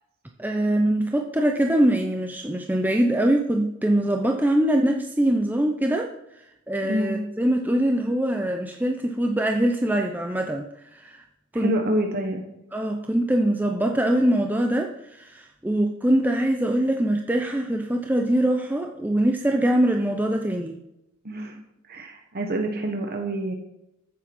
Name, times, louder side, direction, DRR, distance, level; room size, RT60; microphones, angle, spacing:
voice 1, 0.4-6.4 6.7-11.2 11.5-11.7 12.7-20.8, right 1 dB, 10° right, 2 dB, 0.8 m, -23 dB
voice 2, 6.9-7.2 11.6-12.4 21.2-21.6 21.9-23.5, right 1 dB, 45° right, 3 dB, 1.3 m, -27 dB
14.5 x 7.5 x 5.5 m, 0.87 s
head